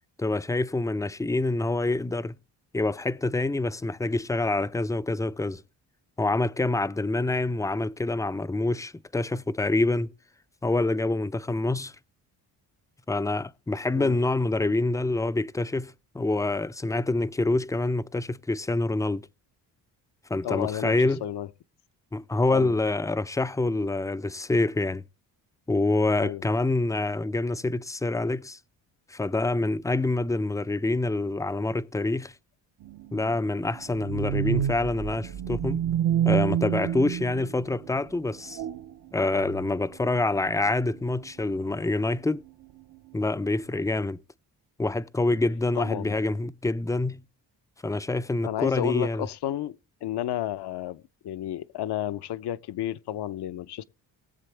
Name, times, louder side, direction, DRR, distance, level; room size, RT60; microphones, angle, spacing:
voice 1, 0.2-2.4 2.7-5.6 6.2-10.1 10.6-12.0 13.1-19.3 20.3-21.2 22.1-25.0 25.7-28.6 29.1-32.3 33.1-35.8 36.2-38.6 39.1-42.4 43.1-44.2 44.8-47.2 47.8-49.3, left 2 dB, 5° left, 0.5 m, -26 dB
voice 2, 20.4-21.0 21.2-21.5 22.5-22.7 26.2-26.4 45.8-46.2 48.4-49.7 50.0-53.8, left 12 dB, 60° left, 0.8 m, -31 dB
sound 1, 32.8-37.9 38.5-38.9 39.3-39.9 40.5-40.7 41.1-41.2, right 10 dB, 55° right, 0.8 m, -28 dB
20.0 x 7.5 x 3.3 m
supercardioid pair, 60°, 45 cm